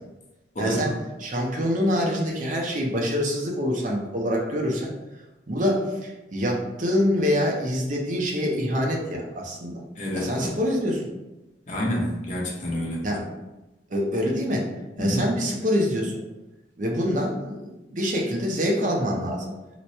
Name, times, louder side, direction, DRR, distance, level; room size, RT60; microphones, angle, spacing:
voice 1, 0.6-4.9 5.5-9.8 10.1-11.1 13.0-13.3 13.9-14.7 15.0-16.2 16.8-19.5, equal, 45° right, -1 dB, 0.6 m, -25 dB
voice 2, 10.0-10.5 11.7-13.0 15.0-15.3, equal, 45° left, -3 dB, 0.9 m, -28 dB
3.0 x 2.1 x 4.1 m, 1.0 s
head